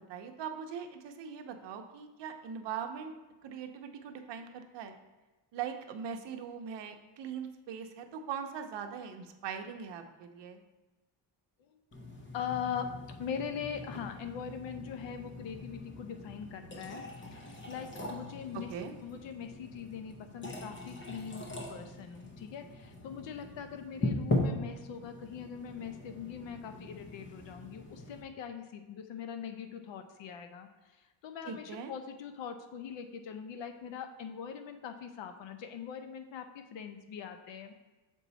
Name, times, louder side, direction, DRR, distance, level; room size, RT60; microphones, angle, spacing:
voice 1, 0.0-3.1 3.4-5.0 5.5-10.6 18.7-18.9 31.5-31.9, right 7 dB, 70° right, 5 dB, 0.8 m, -41 dB
sound 1, 11.9-28.2, left 2 dB, 25° left, 0.8 m, -40 dB
voice 2, 12.3-12.9 13.2-17.0 17.4-18.7 19.0-30.7 31.2-37.7, left 7 dB, 80° left, 7 dB, 0.8 m, -41 dB
7.0 x 4.6 x 4.0 m, 1.2 s
cardioid pair, 175°, 44 cm